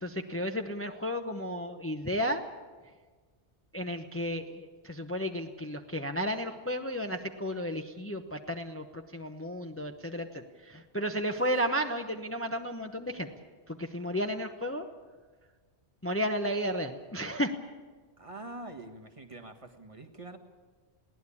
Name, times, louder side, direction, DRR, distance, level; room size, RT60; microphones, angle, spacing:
voice 1, 0.0-2.4 3.7-13.3 13.7-14.9 16.0-17.5, equal, 15° left, 5 dB, 0.9 m, -33 dB
voice 2, 18.2-20.4, right 2 dB, 30° right, 4 dB, 1.6 m, -45 dB
21.5 x 17.0 x 8.6 m, 1.4 s
omnidirectional pair, 1.1 m